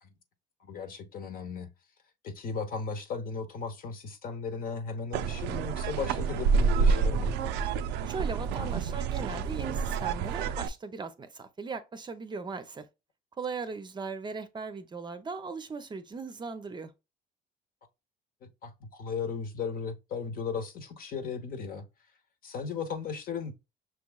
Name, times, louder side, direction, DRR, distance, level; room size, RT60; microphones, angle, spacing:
voice 1, 0.6-1.7 2.2-7.3 18.4-21.8 22.4-23.5, left 5 dB, 60° left, 1.0 m, -36 dB
sound 1, 5.1-10.7, right 5 dB, 85° right, 0.4 m, -28 dB
voice 2, 8.1-12.8 13.4-16.9, right 4 dB, 25° right, 0.6 m, -38 dB
5.9 x 3.0 x 2.3 m
cardioid pair, 110°, 17 cm